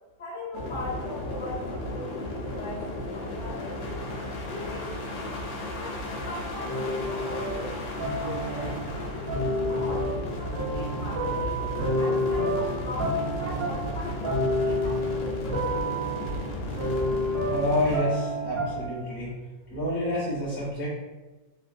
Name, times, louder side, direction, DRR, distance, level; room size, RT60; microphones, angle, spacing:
voice 1, 0.2-4.0 4.5-5.4 5.7-7.8 8.1-11.5 11.9-15.8, left 1 dB, 50° left, -13 dB, 1.0 m, -39 dB
sound 1, 0.5-18.0, left 1 dB, 90° left, 1.4 m, -34 dB
sound 2, 4.5-18.7, equal, 75° right, 1.1 m, -45 dB
sound 3, 6.6-8.9 9.3-19.0, equal, 50° right, 1.2 m, -29 dB
voice 2, 17.5-19.3 19.7-20.9, left 1 dB, 10° left, -10 dB, 1.0 m, -28 dB
3.3 x 2.5 x 2.4 m, 1.2 s
omnidirectional pair, 2.0 m